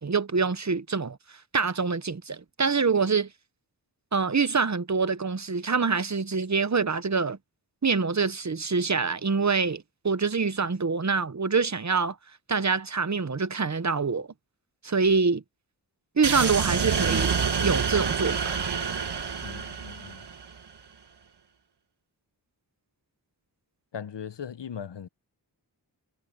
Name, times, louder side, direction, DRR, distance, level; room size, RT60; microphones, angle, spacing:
voice 1, 0.0-1.2 1.5-3.3 4.1-7.4 7.8-12.2 12.5-14.3 14.8-15.4 16.2-18.4, right 5 dB, 40° right, 0.9 m, -25 dB
sound 1, 16.2-20.6, right 6 dB, 70° right, 1.4 m, -27 dB
voice 2, 19.4-20.2 23.9-25.1, left 8 dB, 85° left, 0.9 m, -39 dB
wide cardioid pair, 80°, 42 cm